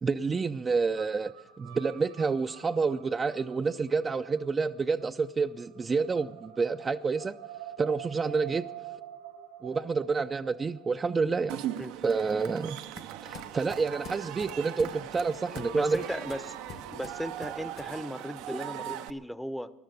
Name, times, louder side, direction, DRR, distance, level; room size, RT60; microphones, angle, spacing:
voice 1, 0.0-1.3 1.6-7.4 7.8-8.7 9.6-11.6 12.0-12.8 13.2-16.0, right 4 dB, 30° right, 7 dB, 0.4 m, -28 dB
sound 1, 0.9-19.1, right 8 dB, 90° right, 2.7 m, -49 dB
Cheering / Crowd, 11.5-19.1, right 12 dB, 70° right, 0.6 m, -40 dB
sound 2, 12.0-18.0, left 6 dB, 55° left, 1.3 m, -48 dB
voice 2, 15.7-16.6 16.9-19.7, equal, ahead, 15 dB, 0.7 m, -36 dB
13.0 x 11.5 x 8.0 m, 1.1 s
hypercardioid pair, 80°, 0 cm